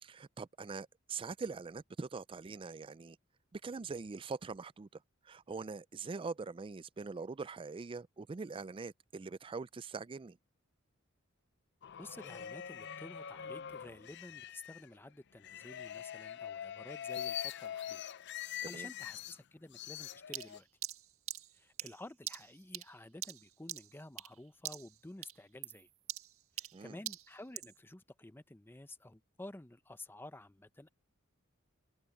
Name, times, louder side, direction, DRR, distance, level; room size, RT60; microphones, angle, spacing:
voice 1, 0.0-3.2 3.5-10.4 18.7-18.9 26.7-27.0, right 4 dB, 25° right, 0.4 m, -43 dB
sound 1, 11.8-14.9 15.4-19.4 19.7-20.6, left 10 dB, 55° left, 0.6 m, -43 dB
voice 2, 12.0-18.0 18.4-20.7 21.5-25.9 26.6-30.9, left 1 dB, 10° left, 0.6 m, -52 dB
sound 2, 20.3-24.4 24.6-25.0 25.2-27.8, right 13 dB, 90° right, 1.7 m, -44 dB
head